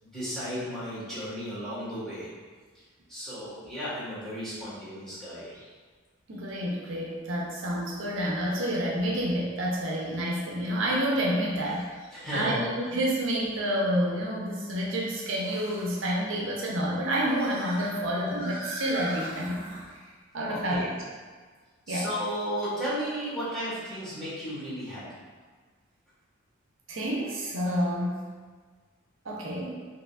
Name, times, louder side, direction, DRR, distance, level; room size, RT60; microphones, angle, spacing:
voice 1, 0.0-2.3 3.1-5.5 11.7-11.8 12.1-12.6 20.4-20.9 21.9-25.0, equal, ahead, -11 dB, 1.5 m, -34 dB
sound 1, 5.5-5.7 6.3-6.4 8.5-8.6 12.1-12.2 15.4-16.0 16.9-19.9, right 1 dB, 50° right, 1.3 m, -41 dB
voice 2, 6.3-11.9 12.3-19.6 20.3-20.9 21.9-22.1 26.9-28.2 29.2-29.7, equal, 70° right, -3 dB, 0.6 m, -29 dB
4.8 x 2.8 x 2.4 m, 1.5 s
head